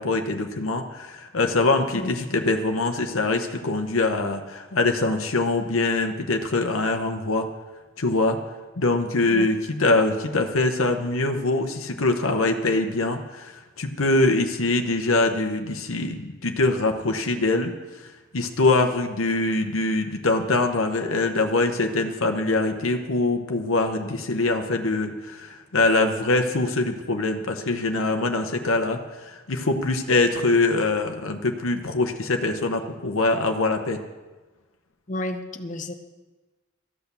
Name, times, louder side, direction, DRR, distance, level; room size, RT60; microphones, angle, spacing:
voice 1, 0.0-7.5 8.0-8.4 8.8-17.7 18.0-18.1 18.3-34.0, left 2 dB, 90° left, 5 dB, 1.0 m, -23 dB
voice 2, 35.1-35.9, left 1 dB, 40° left, 7 dB, 0.9 m, -31 dB
13.5 x 8.2 x 6.9 m, 1.2 s
head